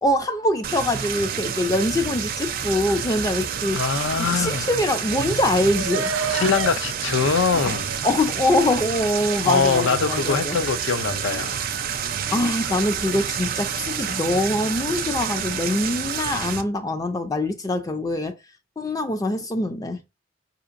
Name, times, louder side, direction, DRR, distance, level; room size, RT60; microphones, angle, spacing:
voice 1, 0.0-3.8 4.1-6.1 7.5-7.7 8.0-10.6 12.3-18.3 18.8-20.0, left 1 dB, 20° left, 0.4 m, -24 dB
sound 1, 0.6-16.6, right 8 dB, 45° right, 0.4 m, -29 dB
voice 2, 3.7-4.6 6.3-7.9 9.4-11.6, left 5 dB, 75° left, 0.5 m, -23 dB
sound 2, 5.2-8.3 8.7-8.8, right 5 dB, 85° right, 0.6 m, -31 dB
4.9 x 2.8 x 2.5 m
head